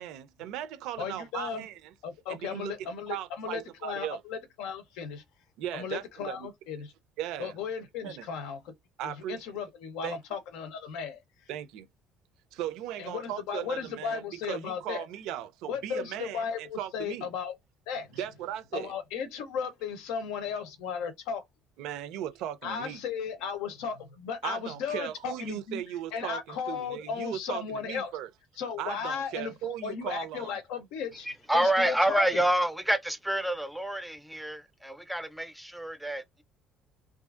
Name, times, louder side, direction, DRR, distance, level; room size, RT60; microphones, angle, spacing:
voice 1, 0.0-1.7 2.3-2.7 3.1-4.2 5.6-6.4 7.2-7.5 8.0-8.2 9.0-9.4 10.0-10.2 11.5-11.9 12.5-14.2 14.5-16.4 16.8-17.3 18.2-18.9 21.8-23.0 24.4-28.3 28.8-30.5, right 11 dB, 80° right, 0.5 m, -37 dB
voice 2, 1.0-1.7 2.0-5.2 5.7-6.9 7.4-8.7 9.0-11.2 13.0-15.0 15.7-17.6 17.9-18.3 18.7-21.4 22.6-25.8 26.1-28.1 28.6-31.3 31.5-32.4, left 6 dB, 85° left, 0.6 m, -35 dB
voice 3, 31.2-36.4, right 1 dB, ahead, 0.4 m, -28 dB
2.6 x 2.4 x 2.3 m
cardioid pair, 120°, 0 cm